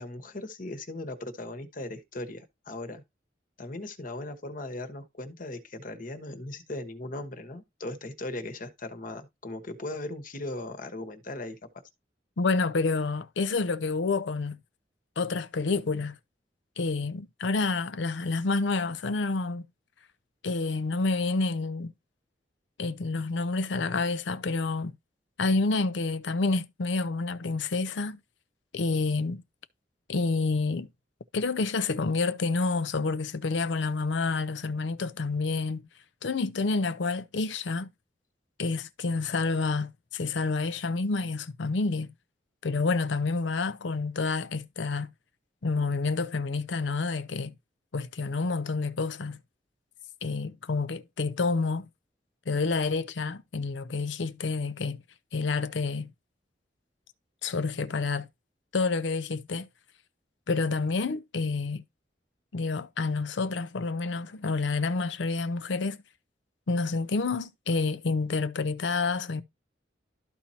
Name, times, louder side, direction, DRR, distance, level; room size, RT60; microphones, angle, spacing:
voice 1, 0.0-3.0 3.6-11.6, left 2 dB, 50° left, 1.2 m, -38 dB
voice 2, 12.4-14.6 15.2-16.2 16.8-19.7 20.4-21.9 22.8-25.0 25.4-28.2 28.7-29.4 30.1-30.9 31.3-35.8 36.2-37.9 38.6-42.1 42.6-45.1 45.6-47.5 47.9-49.4 50.2-51.9 52.5-55.0 55.3-56.1 57.4-58.3 58.7-59.7 60.5-61.8 62.5-66.0 66.7-69.4, left 3 dB, 85° left, 0.6 m, -28 dB
13.0 x 4.4 x 2.8 m
head